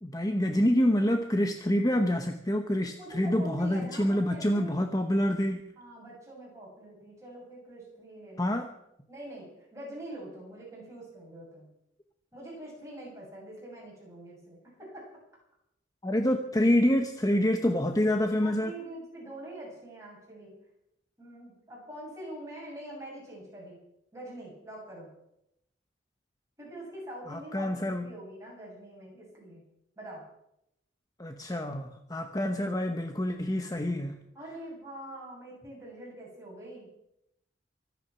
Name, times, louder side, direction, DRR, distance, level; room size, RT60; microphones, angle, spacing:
voice 1, 0.0-5.6 8.4-8.7 16.0-18.7 27.3-28.1 31.2-34.2, left 1 dB, 20° left, 6 dB, 0.9 m, -27 dB
voice 2, 3.0-4.9 5.8-8.5 9.1-11.7 12.3-15.1 18.4-20.5 21.2-23.8 24.1-25.1 26.6-29.6 30.0-30.2 34.3-36.9, right 1 dB, 15° right, -3 dB, 7.5 m, -44 dB
24.0 x 9.4 x 6.0 m, 0.81 s
head